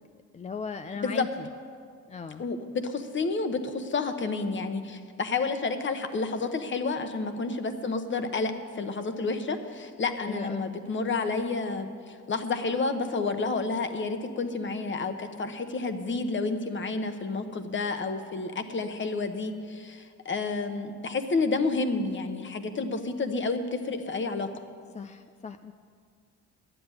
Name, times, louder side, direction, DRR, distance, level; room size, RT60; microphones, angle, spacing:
voice 1, 0.3-1.5 2.1-2.4 10.2-10.8 24.9-25.7, left 5 dB, 25° left, 10 dB, 0.4 m, -37 dB
voice 2, 2.4-24.5, left 3 dB, 40° left, 8 dB, 1.1 m, -30 dB
10.5 x 7.9 x 9.8 m, 2.1 s
cardioid pair, 90°, 30 cm